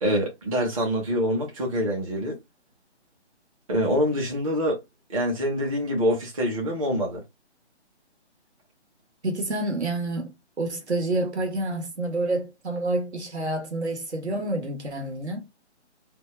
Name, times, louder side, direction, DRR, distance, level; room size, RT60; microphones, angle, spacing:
voice 1, 0.0-2.4 3.7-4.8 5.1-7.2, equal, 30° right, 1.0 m, -25 dB
voice 2, 9.2-15.5, right 2 dB, 70° right, 1.3 m, -28 dB
2.7 x 2.3 x 3.2 m
figure-of-eight pair, 155°, 35 cm